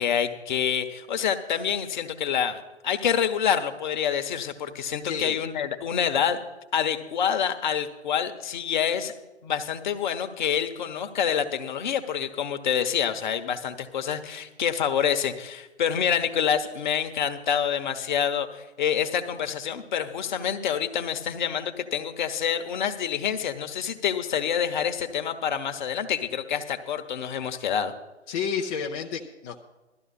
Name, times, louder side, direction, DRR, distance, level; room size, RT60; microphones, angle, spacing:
voice 1, 0.0-6.4 6.7-9.1 9.4-27.9, left 8 dB, 40° left, 8 dB, 1.2 m, -27 dB
voice 2, 5.0-5.4 28.3-29.6, left 6 dB, 15° left, -1 dB, 0.6 m, -30 dB
17.0 x 13.0 x 4.2 m, 1.0 s
figure-of-eight pair, 130°, 35 cm